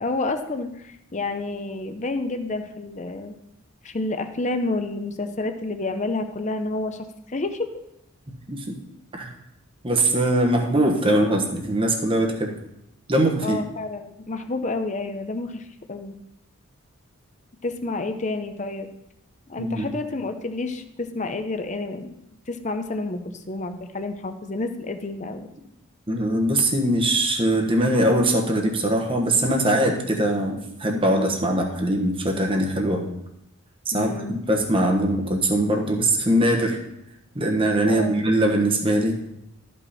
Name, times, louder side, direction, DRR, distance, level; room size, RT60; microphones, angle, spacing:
voice 1, 0.0-3.4 3.8-7.7 13.4-16.1 17.6-18.9 19.5-22.1 22.5-25.5 33.9-34.4 37.8-38.2, left 2 dB, 35° left, 8 dB, 0.7 m, -29 dB
voice 2, 9.8-12.5 13.1-13.6 19.6-19.9 26.1-33.1 33.9-36.8 37.3-39.2, right 1 dB, 25° right, 2 dB, 1.2 m, -22 dB
13.0 x 5.5 x 4.2 m, 0.84 s
head